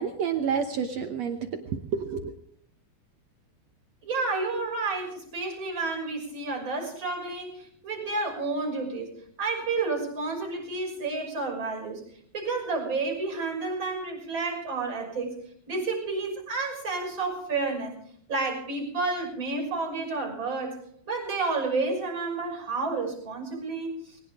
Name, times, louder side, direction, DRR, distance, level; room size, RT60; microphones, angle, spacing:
voice 1, 0.0-1.4 1.7-2.3, right 6 dB, 75° right, 6 dB, 1.6 m, -29 dB
voice 2, 4.0-12.0 12.3-15.4 15.7-17.9 18.3-20.8 21.1-24.2, right 3 dB, 30° right, 2 dB, 6.8 m, -30 dB
21.5 x 18.5 x 3.7 m, 0.62 s
omnidirectional pair, 4.4 m